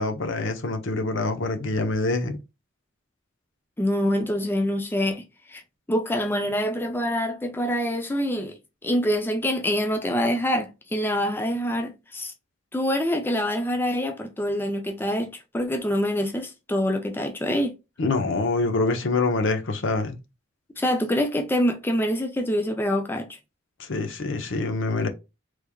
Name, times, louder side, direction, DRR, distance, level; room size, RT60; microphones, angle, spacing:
voice 1, 0.0-2.4 18.0-20.2 23.8-25.1, left 3 dB, 60° left, 0.7 m, -25 dB
voice 2, 3.8-5.2 5.5-5.6 5.9-8.6 8.8-12.3 12.7-17.7 20.8-23.3, equal, 10° left, 0.4 m, -25 dB
3.4 x 3.2 x 2.2 m
head